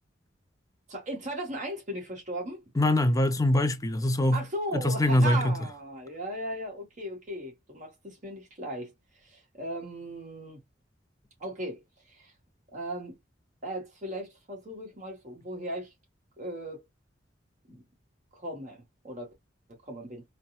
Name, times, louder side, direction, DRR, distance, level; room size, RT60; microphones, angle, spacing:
voice 1, 0.9-2.6 4.3-8.9 9.2-10.6 11.4-11.8 12.1-12.3 12.7-13.2 13.6-15.9 16.4-16.8 17.7-17.8 18.3-19.3 19.8-20.2, right 1 dB, 45° right, 1.5 m, -37 dB
voice 2, 2.8-4.4 4.7-5.6, left 1 dB, 20° left, 0.5 m, -23 dB
4.1 x 2.2 x 2.3 m
head